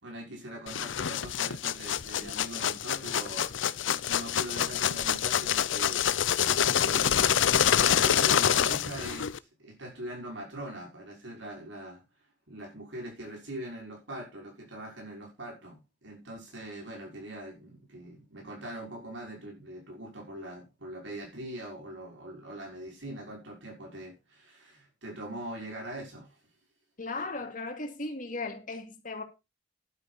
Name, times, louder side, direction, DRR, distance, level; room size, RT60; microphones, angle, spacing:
voice 1, 0.0-6.3 6.7-12.0 12.5-26.4, right 1 dB, 80° right, 5.9 m, -42 dB
sound 1, 0.7-9.4, left 9 dB, 90° left, 0.6 m, -26 dB
voice 2, 27.0-29.2, left 3 dB, 45° left, 2.6 m, -36 dB
11.5 x 9.4 x 4.2 m
head